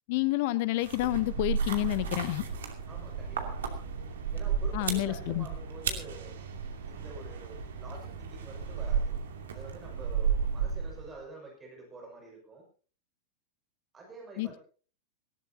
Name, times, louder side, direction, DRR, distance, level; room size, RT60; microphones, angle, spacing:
voice 1, 0.1-2.5 4.7-5.5 14.4-14.6, left 18 dB, 50° left, 17 dB, 0.9 m, -29 dB
sound 1, 0.8-11.2, right 6 dB, 65° right, 2.6 m, -33 dB
voice 2, 2.9-3.6 4.3-6.4 6.8-9.1 9.5-12.6 13.9-14.6, right 3 dB, 20° right, 0 dB, 6.7 m, -48 dB
19.0 x 18.0 x 2.9 m, 0.41 s
figure-of-eight pair, 90°, 0 cm